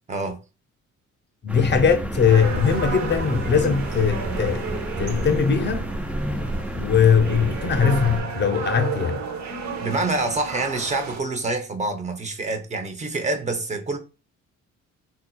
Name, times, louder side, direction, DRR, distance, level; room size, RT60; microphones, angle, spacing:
voice 1, 0.1-0.4 8.6-8.7 9.8-14.0, right 2 dB, 25° right, 0.7 m, -26 dB
voice 2, 1.4-4.6 5.0-5.9 6.7-9.2, left 6 dB, 35° left, 0.6 m, -20 dB
sound 1, 1.5-8.2, right 1 dB, 5° right, 0.3 m, -30 dB
sound 2, 2.3-11.2, right 5 dB, 65° right, 0.7 m, -33 dB
3.9 x 2.7 x 2.2 m
cardioid pair, 90°, 30 cm